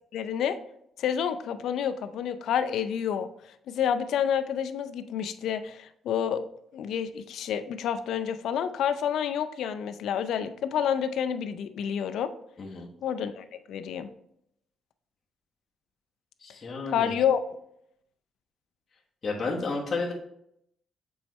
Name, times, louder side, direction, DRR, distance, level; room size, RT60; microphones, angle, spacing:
voice 1, 0.1-0.6 1.0-3.3 3.7-6.5 6.7-12.3 13.0-14.1 16.9-17.4, left 8 dB, 75° left, 11 dB, 0.4 m, -29 dB
voice 2, 16.4-17.1 19.2-20.1, left 3 dB, 40° left, -3 dB, 1.3 m, -31 dB
7.0 x 4.6 x 3.1 m, 0.75 s
cardioid pair, 90°, 0 cm